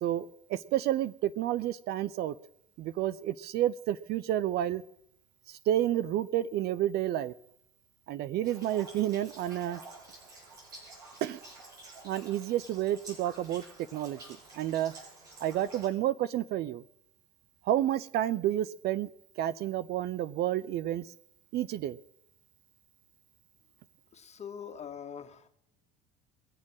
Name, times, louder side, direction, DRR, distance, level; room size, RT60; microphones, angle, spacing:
voice 1, 0.0-2.4 2.8-4.8 5.5-7.3 8.1-9.8 11.2-11.4 12.0-13.6 13.9-14.2 14.6-15.0 15.4-16.8 17.6-19.1 19.4-21.1 21.5-22.0, right 12 dB, 55° right, 15 dB, 0.7 m, -30 dB
sound 1, 8.4-15.9, right 2 dB, 85° right, 6.9 m, -50 dB
voice 2, 24.1-25.5, left 7 dB, 35° left, 4 dB, 2.0 m, -43 dB
22.5 x 7.4 x 6.2 m, 0.74 s
hypercardioid pair, 60°, 20 cm